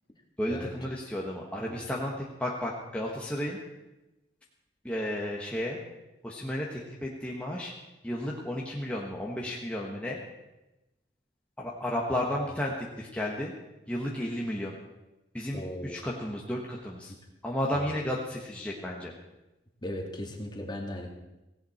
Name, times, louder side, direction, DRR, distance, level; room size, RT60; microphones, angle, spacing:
voice 1, 0.4-3.6 4.8-5.8 6.2-7.7 8.0-10.2 11.6-13.5 13.9-14.7 15.3-17.1 17.4-19.1, left 1 dB, 5° left, -3 dB, 1.5 m, -33 dB
voice 2, 15.5-16.1 17.1-17.2 17.7-17.9 19.8-21.1, left 1 dB, 25° left, 1 dB, 2.1 m, -37 dB
17.5 x 16.5 x 4.4 m, 0.99 s
head